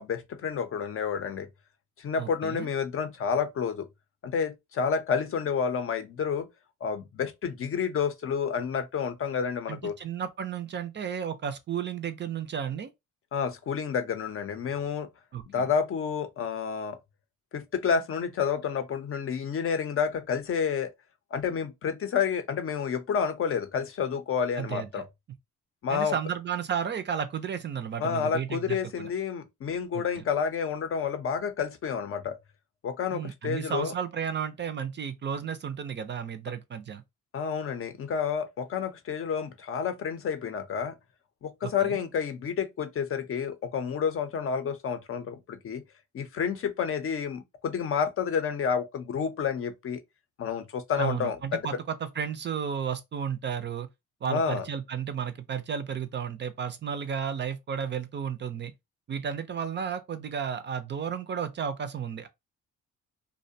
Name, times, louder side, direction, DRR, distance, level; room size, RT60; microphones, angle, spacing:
voice 1, 0.0-1.5 2.0-3.9 4.2-6.5 6.8-10.0 13.3-15.1 15.5-17.0 17.5-20.9 21.3-25.1 25.8-26.1 28.0-32.4 32.8-33.9 37.3-41.0 41.4-45.8 46.1-50.0 50.4-51.6 54.3-54.7, left 6 dB, 45° left, 0.5 m, -29 dB
voice 2, 2.2-2.7 9.7-12.9 15.3-15.7 24.6-24.9 25.9-29.1 29.9-30.2 33.1-37.0 41.6-42.0 51.0-51.7 52.0-53.9 54.2-58.7 59.1-62.3, right 7 dB, 40° right, 0.4 m, -33 dB
2.5 x 2.1 x 2.6 m
cardioid pair, 90°, 30 cm